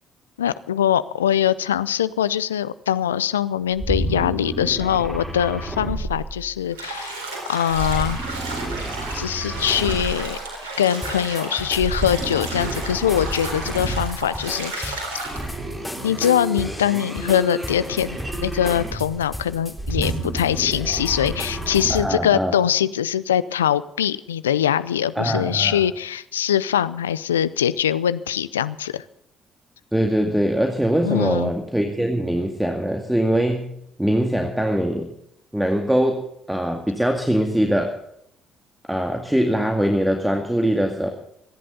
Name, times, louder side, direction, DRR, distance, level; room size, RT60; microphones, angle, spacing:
voice 1, 0.4-7.2 7.5-8.2 9.1-10.4 10.8-15.0 16.0-29.0 31.0-31.5, left 10 dB, 85° left, 16 dB, 0.5 m, -22 dB
sound 1, 3.7-6.8 7.7-10.4 11.7-14.3 15.2-19.2 19.7-22.2, right 2 dB, 25° right, 7.2 m, -30 dB
Bathtub (filling or washing), 6.7-15.5, right 2 dB, 80° right, 4.0 m, -33 dB
sound 2, 11.0-22.1, left 1 dB, 10° left, 3.3 m, -37 dB
voice 2, 21.9-22.6 25.2-25.8 29.9-33.7 34.0-35.1 35.5-38.0 38.9-41.1, right 1 dB, 5° right, 4 dB, 2.2 m, -22 dB
26.0 x 11.0 x 3.9 m, 0.76 s
hypercardioid pair, 50°, 0 cm